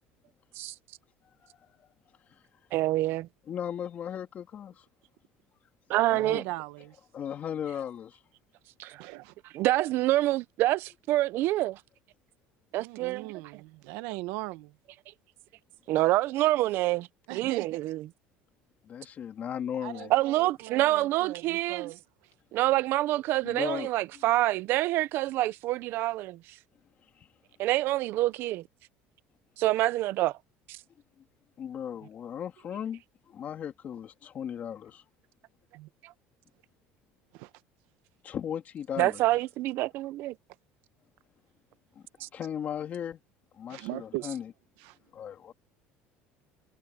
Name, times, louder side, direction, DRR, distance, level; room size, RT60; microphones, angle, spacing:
voice 1, 1.4-1.7 3.5-4.8 6.1-6.4 7.1-8.2 18.9-20.1 23.4-24.2 27.2-27.3 31.6-33.0 33.3-35.0 38.2-39.2 41.9-42.0 42.3-43.2 43.6-44.4 45.1-45.5, left 9 dB, 35° left, 3.0 m, -36 dB
voice 2, 2.7-3.3 5.9-6.4 8.8-9.0 9.5-11.8 12.7-13.3 15.9-18.0 20.1-21.9 22.5-26.6 27.6-28.6 29.6-30.4 30.7-30.8 36.0-36.1 39.0-40.3 42.2-42.3, right 16 dB, 60° right, 0.8 m, -27 dB
voice 3, 6.2-7.0 9.0-9.3 12.7-14.8 17.3-17.8 19.8-22.0 32.0-32.1 35.7-35.9 37.3-37.5 42.2-42.3 43.7-44.3 44.8-45.0, right 20 dB, 80° right, 1.4 m, -39 dB
cardioid pair, 145°, 4 cm